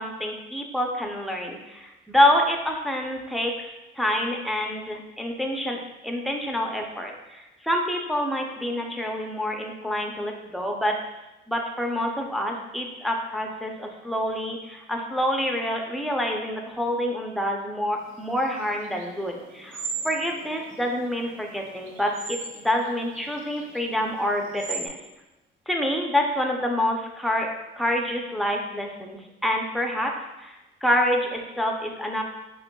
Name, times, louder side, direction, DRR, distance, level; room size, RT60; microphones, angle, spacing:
voice 1, 0.0-11.0 11.5-25.0 25.7-27.5 27.8-30.1 30.4-32.2, left 1 dB, ahead, 1 dB, 0.5 m, -27 dB
sound 1, 18.1-24.9, right 5 dB, 85° right, 0.6 m, -39 dB
5.0 x 3.0 x 2.3 m, 0.98 s
cardioid pair, 90°, 20 cm